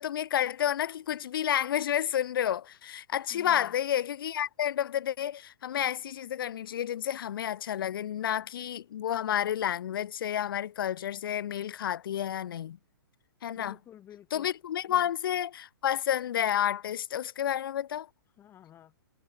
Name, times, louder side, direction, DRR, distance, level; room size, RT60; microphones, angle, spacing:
voice 1, 0.0-12.8 13.4-13.8 14.3-18.1, left 10 dB, 65° left, 0.4 m, -30 dB
voice 2, 3.3-3.7 13.5-14.5 14.9-15.1 18.4-18.9, left 11 dB, 20° left, 0.7 m, -51 dB
hypercardioid pair, 125°, 12 cm